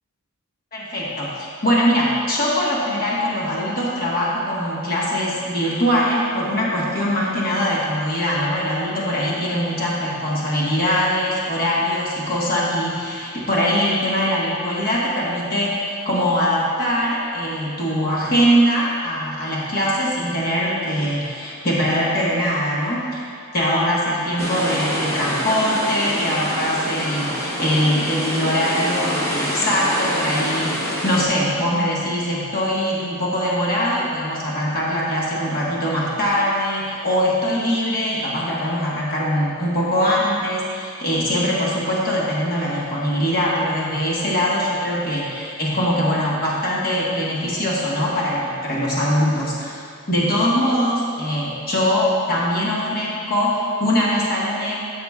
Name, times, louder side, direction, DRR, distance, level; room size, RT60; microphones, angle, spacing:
voice 1, 0.7-23.3 23.5-49.8 50.1-54.7, equal, 45° left, -5 dB, 1.5 m, -22 dB
sound 1, 24.4-31.2, equal, 15° left, 1.1 m, -26 dB
12.5 x 6.5 x 2.4 m, 2.4 s
head